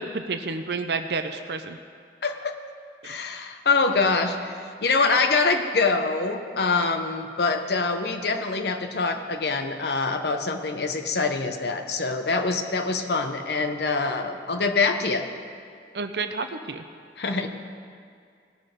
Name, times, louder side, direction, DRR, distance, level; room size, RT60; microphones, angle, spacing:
voice 1, 0.0-1.8 3.0-3.1 15.9-16.8, right 4 dB, 65° right, 8 dB, 0.6 m, -30 dB
voice 2, 2.2-2.6 3.0-15.2 17.2-17.5, left 4 dB, 65° left, 6 dB, 0.9 m, -25 dB
18.5 x 6.2 x 5.1 m, 2.2 s
head